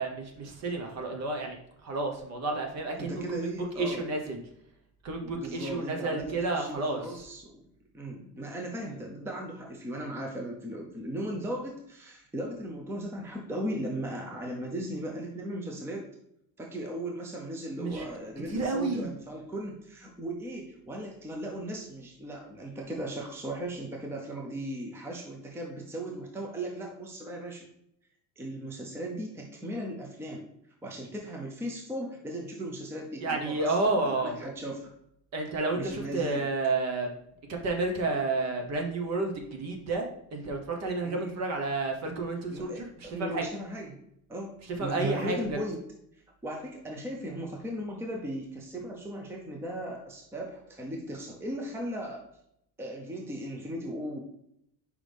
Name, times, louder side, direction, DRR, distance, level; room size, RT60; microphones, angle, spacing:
voice 1, 0.0-1.6 1.8-3.5 3.8-4.4 5.0-7.0 17.8-18.0 18.5-19.1 33.2-34.5 35.3-37.1 37.5-42.9 43.2-43.4 44.8-45.4, right 3 dB, 45° right, 3 dB, 1.1 m, -30 dB
voice 2, 3.0-4.0 5.2-7.6 7.9-16.1 16.6-27.7 28.4-30.5 30.8-34.9 35.7-36.5 41.0-41.4 42.5-44.0 44.3-45.8 46.4-52.2 52.8-54.2, right 1 dB, 5° right, 0 dB, 0.6 m, -37 dB
5.9 x 4.9 x 3.4 m, 0.76 s
cardioid pair, 175°, 36 cm